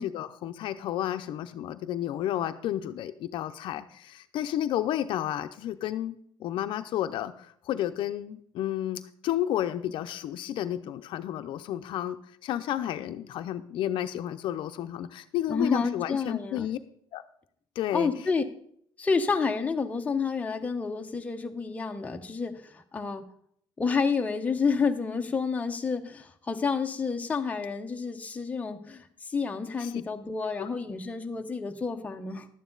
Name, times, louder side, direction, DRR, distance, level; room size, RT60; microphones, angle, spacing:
voice 1, 0.0-16.8 17.1-17.2 17.8-18.1 29.8-30.0 30.6-30.7, left 12 dB, 65° left, 10 dB, 0.6 m, -32 dB
voice 2, 15.5-16.7 17.9-18.4 19.0-23.2 23.8-32.5, left 5 dB, 15° left, 4 dB, 0.8 m, -29 dB
11.5 x 9.3 x 3.9 m, 0.65 s
cardioid pair, 135°, 9 cm